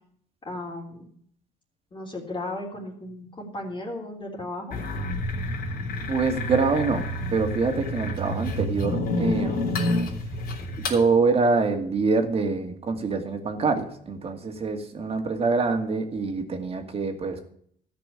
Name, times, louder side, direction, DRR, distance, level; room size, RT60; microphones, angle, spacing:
voice 1, 0.4-1.1 1.9-4.8, left 2 dB, 30° left, -3 dB, 3.4 m, -35 dB
sound 1, 4.7-11.0, left 1 dB, 65° left, 3.6 m, -29 dB
voice 2, 6.1-9.9 10.8-17.4, right 4 dB, 35° right, 5 dB, 2.3 m, -25 dB
13.5 x 6.0 x 8.8 m, 0.63 s
cardioid pair, 110°, 17 cm